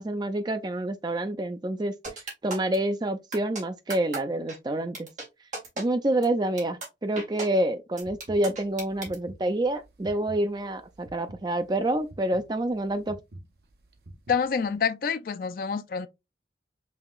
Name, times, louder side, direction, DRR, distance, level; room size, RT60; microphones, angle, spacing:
voice 1, 0.0-1.9 2.4-5.1 5.8-13.2, right 1 dB, 25° right, 0.4 m, -27 dB
sound 1, 2.0-2.8 3.3-3.6 3.9-4.2 4.5-4.6 4.9-5.3 5.5-5.8 6.2-6.3 6.6-6.9 7.2-7.5 8.0-9.2, right 2 dB, 40° right, 1.8 m, -34 dB
sound 2, 8.0-14.8, right 1 dB, 60° right, 0.7 m, -48 dB
voice 2, 14.3-16.1, left 6 dB, 50° left, 0.3 m, -27 dB
5.4 x 2.9 x 2.3 m
head